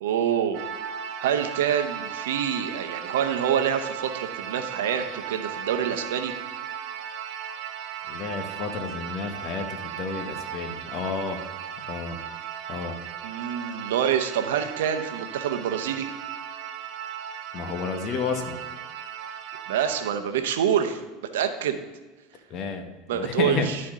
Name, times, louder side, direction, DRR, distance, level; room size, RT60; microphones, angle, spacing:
voice 1, 0.0-0.7 1.2-6.3 13.2-16.1 19.7-21.0 21.3-21.8 23.1-23.8, right 9 dB, 85° right, 8 dB, 0.8 m, -26 dB
sound 1, 0.5-20.1, right 9 dB, 60° right, 0.9 m, -36 dB
voice 2, 8.1-11.4 11.9-12.2 12.7-12.9 17.5-18.6 22.5-23.7, left 4 dB, 45° left, 6 dB, 1.2 m, -31 dB
12.0 x 4.3 x 3.7 m, 1.2 s
supercardioid pair, 105°, 0 cm